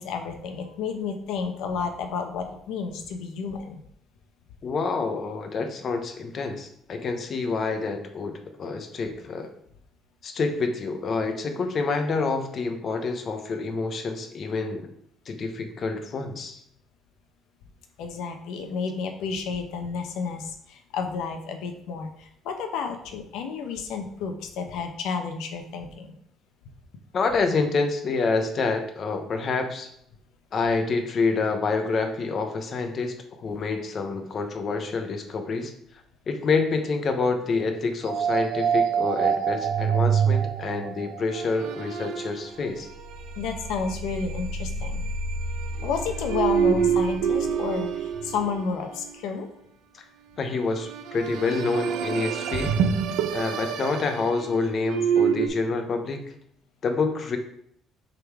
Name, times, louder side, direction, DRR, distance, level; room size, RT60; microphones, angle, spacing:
voice 1, 0.0-3.8 18.0-26.2 43.4-45.0 45.8-49.5, left 5 dB, 80° left, 5 dB, 0.9 m, -31 dB
voice 2, 4.6-9.5 10.2-14.9 15.3-16.6 27.1-29.9 30.5-35.7 36.3-42.9 49.9-50.0 50.4-52.8 53.3-56.2 56.8-57.4, left 4 dB, 35° left, 5 dB, 0.9 m, -27 dB
sound 1, 38.0-49.2 50.7-55.5, right 7 dB, 85° right, 0.6 m, -27 dB
6.7 x 3.8 x 4.7 m, 0.69 s
cardioid pair, 145°, 0 cm